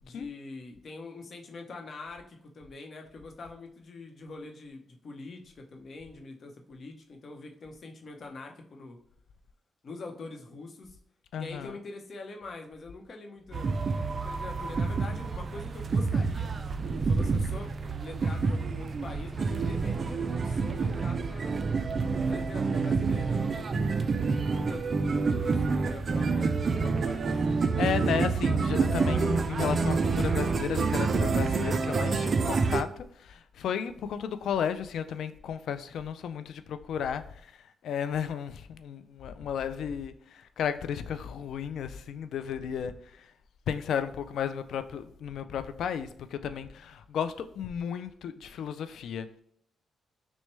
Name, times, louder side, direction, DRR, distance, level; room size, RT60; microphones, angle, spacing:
voice 1, 0.0-9.0 9.8-11.0 11.4-13.7 14.1-16.5 17.0-17.7 18.0-21.5 22.3-27.3, left 3 dB, 55° left, 0.9 m, -44 dB
voice 2, 11.3-11.7 27.8-37.2 37.8-40.1 40.6-42.9 43.7-49.3, left 8 dB, 80° left, 0.3 m, -33 dB
sound 1, 13.5-32.8, right 4 dB, 45° right, 0.4 m, -28 dB
6.0 x 2.2 x 3.2 m
cardioid pair, 85°, 0 cm